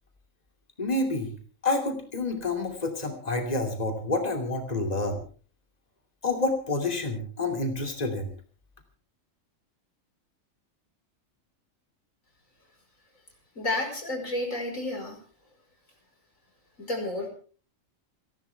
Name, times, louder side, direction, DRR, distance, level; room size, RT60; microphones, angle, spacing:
voice 1, 0.8-1.3 1.6-5.2 6.2-8.3, left 2 dB, 30° left, 3 dB, 3.0 m, -28 dB
voice 2, 13.6-15.2 16.8-17.3, left 2 dB, 90° left, 3 dB, 5.5 m, -31 dB
29.5 x 11.5 x 3.5 m, 0.42 s
omnidirectional pair, 1.3 m